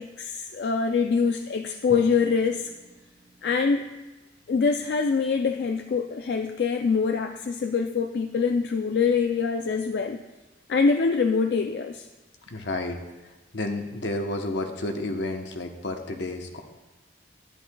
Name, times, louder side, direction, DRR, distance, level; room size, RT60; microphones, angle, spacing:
voice 1, 0.0-2.7 3.4-3.9 4.5-10.2 10.7-12.1, left 5 dB, 60° left, 5 dB, 0.3 m, -24 dB
Drum, 1.9-3.8, equal, 50° right, 1.1 m, -47 dB
voice 2, 12.5-16.6, left 2 dB, 80° left, 4 dB, 1.0 m, -31 dB
11.0 x 11.0 x 2.3 m, 1.1 s
head